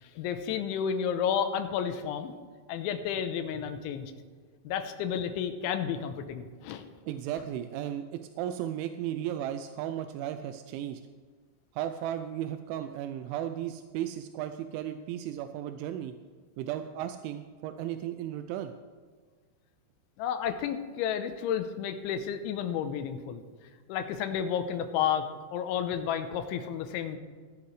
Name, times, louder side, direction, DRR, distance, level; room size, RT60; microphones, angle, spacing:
voice 1, 0.0-2.3 2.7-4.1 4.6-6.8 20.2-23.4 23.9-27.2, left 8 dB, 85° left, 8 dB, 3.2 m, -31 dB
voice 2, 7.1-11.0 11.7-16.1 16.6-18.7, right 11 dB, 85° right, 8 dB, 3.0 m, -35 dB
19.5 x 11.5 x 3.2 m, 1.5 s
omnidirectional pair, 5.4 m